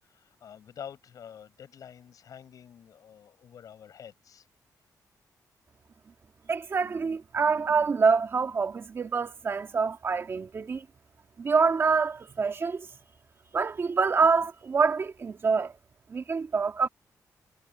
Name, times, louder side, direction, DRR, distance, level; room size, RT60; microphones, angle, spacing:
voice 1, 0.1-4.5, left 8 dB, 65° left, 6.8 m, -47 dB
voice 2, 6.5-10.9 11.4-12.9 13.5-15.7 16.1-16.9, right 5 dB, 40° right, 1.8 m, -26 dB
wide cardioid pair, 130°, 6 cm